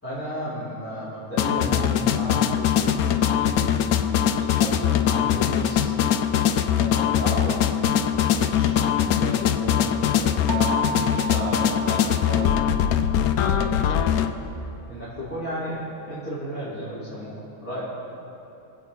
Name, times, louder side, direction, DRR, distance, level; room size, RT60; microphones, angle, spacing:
voice 1, 0.0-2.9 3.2-5.9 6.7-7.6 8.4-12.6 13.4-14.3 14.9-17.8, equal, 10° left, -12 dB, 3.3 m, -34 dB
sound 1, 1.4-14.3, left 9 dB, 80° left, 1.1 m, -22 dB
sound 2, 10.5-13.3, right 7 dB, 75° right, 1.4 m, -34 dB
25.0 x 8.6 x 4.2 m, 2.9 s
omnidirectional pair, 1.5 m